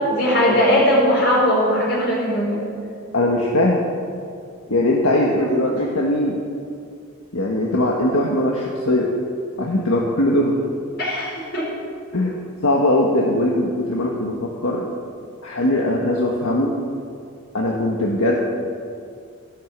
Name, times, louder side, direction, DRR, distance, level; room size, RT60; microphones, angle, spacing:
voice 1, 0.1-2.6 5.4-5.5 11.0-11.7, equal, 50° left, -8 dB, 4.7 m, -19 dB
voice 2, 3.1-3.8 4.7-6.4 7.3-9.1 9.6-10.5 12.1-12.4 12.6-14.8 15.4-16.7 17.5-18.4, left 1 dB, 75° left, -2 dB, 1.6 m, -20 dB
14.5 x 12.0 x 7.4 m, 2.4 s
head